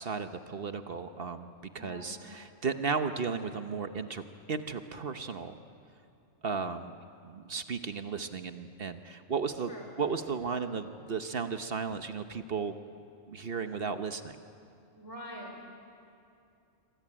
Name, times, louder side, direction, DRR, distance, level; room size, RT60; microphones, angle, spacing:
voice 1, 0.0-4.2 4.5-5.5 6.4-6.9 7.2-9.7 10.0-12.7 13.3-14.4, right 5 dB, 50° right, 9 dB, 1.1 m, -34 dB
voice 2, 1.7-2.1 9.6-9.9 14.9-15.6, equal, 90° left, 0 dB, 5.7 m, -45 dB
27.0 x 24.0 x 8.8 m, 2.6 s
omnidirectional pair, 1.3 m